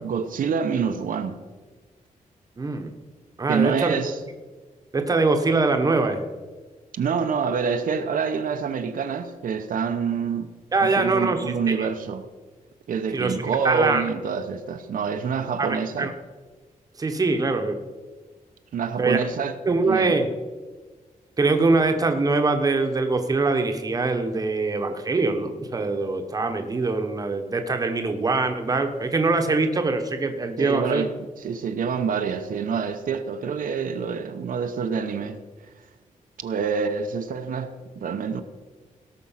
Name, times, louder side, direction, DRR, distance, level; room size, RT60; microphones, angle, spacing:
voice 1, 0.0-1.4 3.5-4.2 6.9-10.5 10.8-12.3 12.9-16.1 18.7-19.6 19.9-20.2 30.6-35.7 36.4-38.4, right 6 dB, 75° right, 0.8 m, -27 dB
voice 2, 2.6-2.9 3.4-4.0 4.9-6.2 10.7-11.4 11.8-11.9 13.1-13.4 13.6-14.0 15.6-16.1 17.0-17.8 19.0-19.2 19.6-20.3 21.4-31.0, right 3 dB, 25° right, 1.0 m, -23 dB
17.5 x 6.2 x 5.6 m
wide cardioid pair, 180°, 14 cm